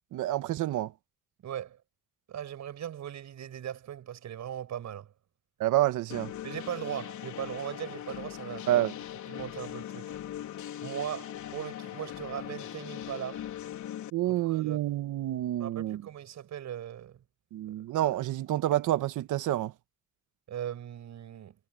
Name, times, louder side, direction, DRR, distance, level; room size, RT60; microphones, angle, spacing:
voice 1, 0.1-0.9 5.6-6.3 8.7-8.9 14.1-16.0 17.5-19.7, right 14 dB, 80° right, 1.4 m, -28 dB
voice 2, 1.4-1.8 2.3-5.1 6.4-8.6 9.3-10.1 10.8-13.4 14.2-14.8 15.6-17.2 20.5-21.6, right 10 dB, 65° right, 7.4 m, -39 dB
sound 1, 6.1-14.1, left 11 dB, 75° left, 3.8 m, -40 dB
cardioid pair, 90°, 30 cm